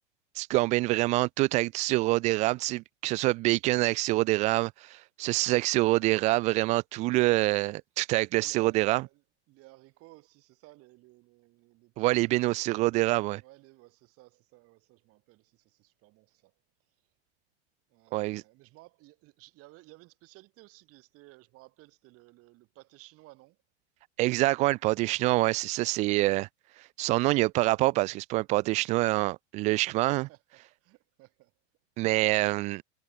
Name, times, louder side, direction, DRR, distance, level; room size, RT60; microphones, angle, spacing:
voice 1, 0.4-9.0 12.0-13.4 18.1-18.4 24.2-26.5 27.0-30.3 32.0-32.8, right 20 dB, 20° right, 0.3 m, -26 dB
voice 2, 8.3-13.0 13.4-16.5 17.9-23.6 29.7-30.4 30.8-31.5, right 21 dB, 40° right, 5.4 m, -56 dB
supercardioid pair, 140°, 35 cm